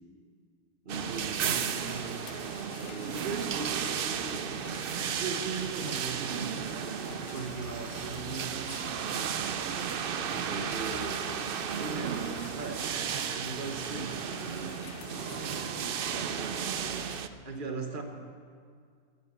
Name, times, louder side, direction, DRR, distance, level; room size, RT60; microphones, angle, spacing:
voice 1, 0.8-2.2 2.7-4.5 5.1-8.7 10.1-12.8 13.3-14.8 17.5-18.0, right 4 dB, 35° right, 5 dB, 1.3 m, -39 dB
sound 1, 0.9-17.2, left 9 dB, 65° left, 0.8 m, -47 dB
sound 2, 0.9-17.3, right 8 dB, 65° right, 0.5 m, -34 dB
voice 2, 15.0-18.0, left 1 dB, 30° left, -4 dB, 2.6 m, -50 dB
11.5 x 11.0 x 8.1 m, 2.1 s
omnidirectional pair, 1.5 m